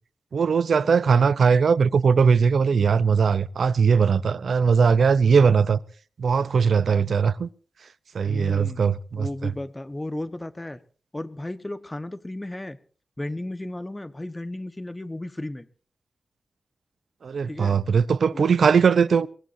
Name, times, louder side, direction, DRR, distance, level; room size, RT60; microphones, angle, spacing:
voice 1, 0.3-5.8 6.2-7.5 8.1-9.5 17.2-19.3, right 6 dB, 75° right, 0.7 m, -20 dB
voice 2, 8.2-8.8 9.2-10.8 11.1-12.8 13.2-15.7 17.4-17.8 18.3-18.5, left 1 dB, 15° left, 1.3 m, -34 dB
23.5 x 19.5 x 2.7 m
wide cardioid pair, 110°, 0 cm